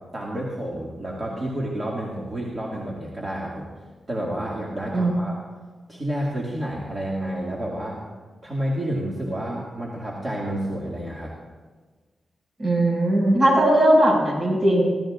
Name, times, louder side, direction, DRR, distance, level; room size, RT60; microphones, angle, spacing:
voice 1, 0.1-3.7 4.1-5.4 5.9-8.0 8.4-11.3, right 1 dB, 25° right, -5 dB, 2.1 m, -29 dB
voice 2, 12.6-14.9, right 1 dB, 45° right, -2 dB, 5.6 m, -18 dB
25.5 x 16.0 x 2.5 m, 1.4 s
wide cardioid pair, 155°, 0 cm